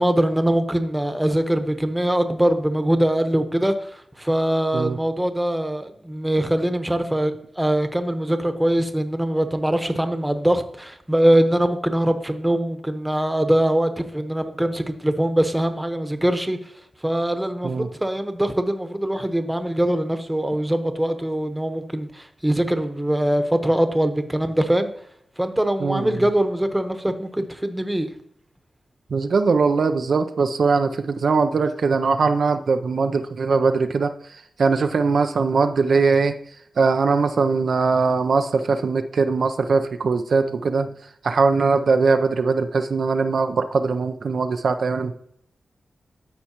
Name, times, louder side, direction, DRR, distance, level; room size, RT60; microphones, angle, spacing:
voice 1, 0.0-16.7 17.0-24.9 25.4-28.1, right 1 dB, 10° right, 8 dB, 0.9 m, -22 dB
voice 2, 25.8-26.3 29.1-36.3 36.8-40.9 41.2-45.1, right 4 dB, 70° right, 7 dB, 0.4 m, -21 dB
13.0 x 4.5 x 2.9 m, 0.72 s
cardioid pair, 50°, 0 cm